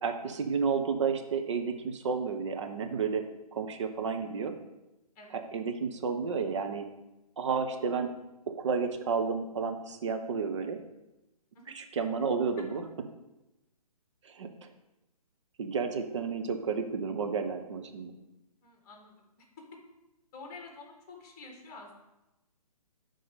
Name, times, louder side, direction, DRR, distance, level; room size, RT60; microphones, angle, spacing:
voice 1, 0.0-3.2 3.5-4.5 5.3-6.9 7.4-8.1 8.6-10.8 11.7-12.8 14.3-14.5 15.6-18.1, right 5 dB, 50° right, 6 dB, 0.9 m, -31 dB
voice 2, 18.6-19.6 20.3-21.9, left 3 dB, 25° left, 2 dB, 1.6 m, -49 dB
10.5 x 3.9 x 5.2 m, 0.96 s
figure-of-eight pair, 135°, 20 cm